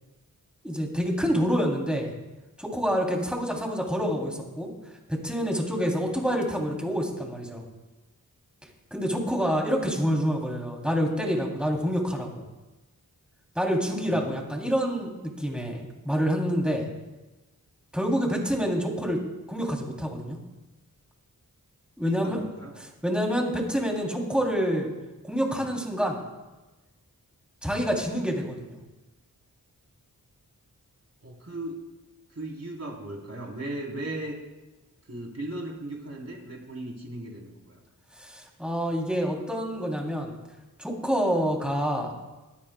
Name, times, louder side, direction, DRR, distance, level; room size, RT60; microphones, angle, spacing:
voice 1, 0.6-2.1 2.6-4.7 5.1-7.6 8.9-12.5 13.5-15.1 15.4-16.9 17.9-19.2 19.5-20.4 22.0-22.4 22.8-24.9 25.2-26.2 27.6-28.8 38.2-40.3 40.8-42.1, equal, 5° right, 0 dB, 3.1 m, -27 dB
voice 2, 22.0-22.8 31.2-31.8 32.3-34.3 35.0-37.8, right 1 dB, 45° right, -1 dB, 3.6 m, -37 dB
23.5 x 9.7 x 2.3 m, 1.1 s
cardioid pair, 55°, 36 cm